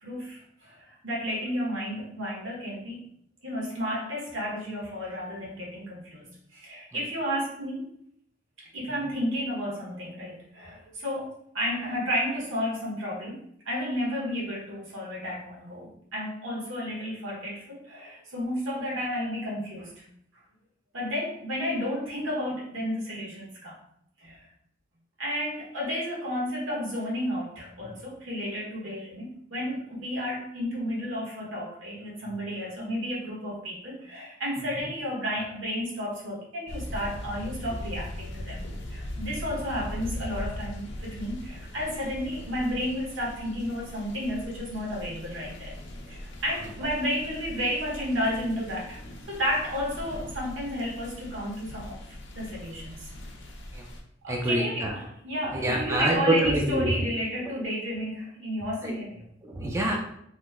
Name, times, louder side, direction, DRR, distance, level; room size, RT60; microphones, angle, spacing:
voice 1, 0.0-3.0 3.4-6.2 6.5-7.9 8.6-20.0 20.9-23.7 24.2-24.5 25.2-38.6 38.9-45.7 46.1-49.0 49.3-53.1 54.2-59.3, equal, 80° right, -4 dB, 1.2 m, -32 dB
sound 1, 36.7-54.0, left 1 dB, 65° left, 0.5 m, -40 dB
voice 2, 54.3-54.9 55.5-57.0 58.8-58.9 59.4-60.0, right 1 dB, 15° right, 0 dB, 0.4 m, -26 dB
2.9 x 2.1 x 3.4 m, 0.72 s
head